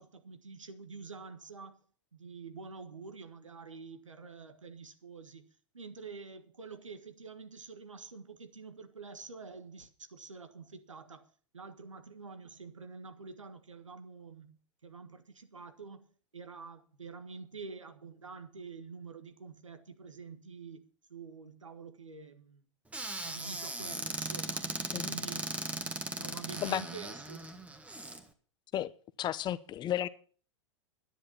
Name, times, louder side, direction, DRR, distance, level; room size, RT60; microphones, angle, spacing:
voice 1, 0.0-1.8 2.1-5.5 5.7-16.1 16.3-20.8 21.1-22.6 23.2-24.7 25.0-25.5 26.2-27.5, right 4 dB, 85° right, 1.6 m, -47 dB
Squeak / Cupboard open or close, 22.9-28.2, right 2 dB, 10° right, 1.6 m, -38 dB
voice 2, 29.2-30.1, left 11 dB, 30° left, 0.7 m, -33 dB
11.0 x 10.0 x 7.3 m
figure-of-eight pair, 95°, 16 cm